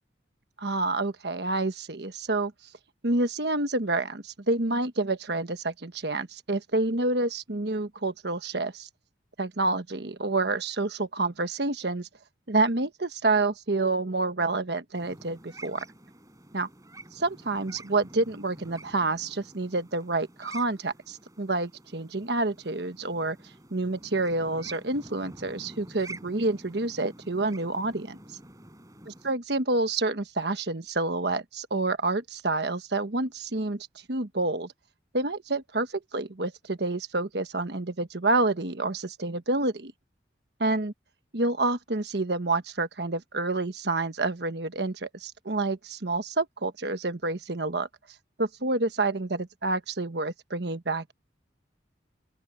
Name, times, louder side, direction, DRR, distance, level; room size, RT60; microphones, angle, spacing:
voice 1, 0.6-2.5 3.0-8.9 9.4-12.1 12.5-15.8 16.5-16.7 17.2-23.4 23.7-28.2 29.1-34.7 35.1-39.9 40.6-40.9 41.3-47.9 48.4-51.1, right 2 dB, 65° right, 1.3 m, -28 dB
sound 1, 14.9-29.3, right 2 dB, 20° right, 6.9 m, -48 dB
open air
head